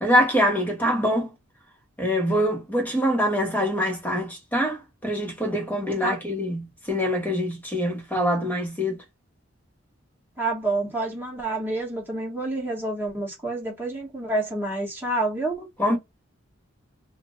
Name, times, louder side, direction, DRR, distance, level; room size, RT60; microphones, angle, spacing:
voice 1, 0.0-1.3 2.0-9.0 15.8-16.0, equal, 10° left, 1.3 m, -24 dB
voice 2, 10.4-15.7, right 2 dB, 10° right, 1.7 m, -28 dB
3.6 x 2.5 x 2.6 m
head